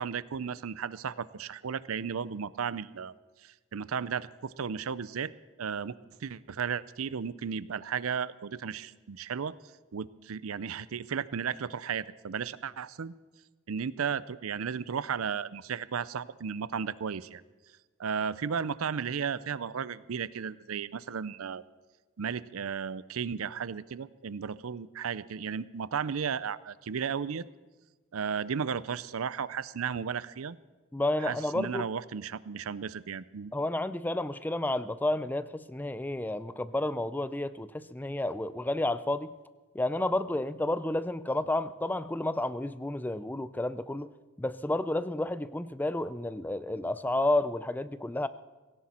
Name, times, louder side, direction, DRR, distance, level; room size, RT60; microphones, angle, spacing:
voice 1, 0.0-3.1 3.4-5.3 5.6-5.9 6.2-9.5 9.9-13.1 13.7-17.4 18.0-21.6 22.2-27.4 28.1-30.6 31.2-33.5, right 6 dB, 85° right, 18 dB, 0.5 m, -34 dB
voice 2, 30.9-31.9 33.5-39.3 39.7-44.1 44.4-48.3, left 1 dB, 10° left, 15 dB, 0.4 m, -31 dB
17.5 x 16.5 x 4.3 m, 1.3 s
head